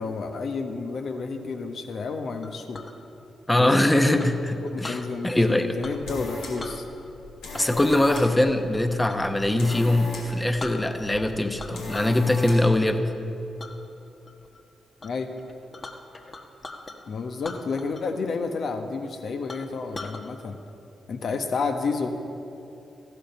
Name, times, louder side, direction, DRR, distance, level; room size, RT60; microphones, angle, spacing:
voice 1, 0.0-2.8 3.6-4.3 4.6-6.9 15.0-15.3 17.1-20.6 21.1-22.2, left 4 dB, 65° left, 5 dB, 1.2 m, -30 dB
Chink clink, 2.4-3.0 4.2-5.0 5.8-6.1 6.4-6.8 7.8-9.3 9.6-9.8 10.3-10.4 10.6-11.2 11.6-12.2 12.6-13.0 13.6-13.7 14.2-14.6 15.0-15.1 15.4-17.0 17.4-18.2 18.4-18.5 19.0-19.1 19.5-20.2, left 3 dB, 40° left, 1.3 m, -40 dB
voice 2, 3.5-5.7 7.5-13.2, left 1 dB, 15° left, 7 dB, 1.0 m, -22 dB
sound 1, 5.8-12.8, left 2 dB, 80° left, 2.2 m, -39 dB
14.5 x 11.5 x 5.3 m, 2.8 s
hypercardioid pair, 40°, 0 cm